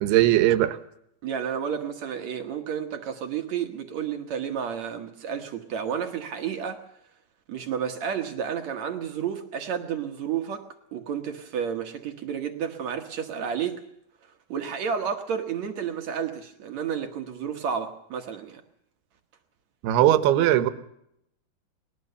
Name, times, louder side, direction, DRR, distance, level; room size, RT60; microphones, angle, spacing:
voice 1, 0.0-0.8 19.8-20.7, right 13 dB, 90° right, 12 dB, 3.1 m, -19 dB
voice 2, 1.2-6.8 7.5-10.7 10.9-13.8 14.5-18.6, right 7 dB, 60° right, 5 dB, 2.0 m, -31 dB
21.0 x 19.5 x 6.9 m, 0.78 s
omnidirectional pair, 4.5 m